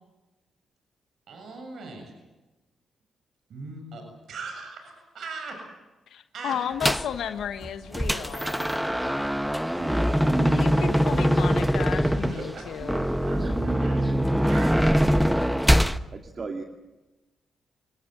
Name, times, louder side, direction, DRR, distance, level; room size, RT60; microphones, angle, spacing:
voice 1, 1.3-2.1 3.5-5.6 6.3-6.5 8.0-8.5 9.2-9.3 9.7-9.8 12.1-12.8 13.2-14.1 14.4-15.0, right 3 dB, 70° right, 3 dB, 7.1 m, -40 dB
voice 2, 6.1-8.6 10.5-13.0, left 9 dB, 80° left, 9 dB, 1.4 m, -33 dB
sound 1, 6.8-7.2 7.6-16.0, equal, 5° right, 1.2 m, -23 dB
voice 3, 9.8-10.9 12.8-14.3 16.1-16.6, right 3 dB, 45° right, 4 dB, 2.5 m, -35 dB
28.0 x 19.5 x 8.1 m, 1.1 s
supercardioid pair, 60°, 0 cm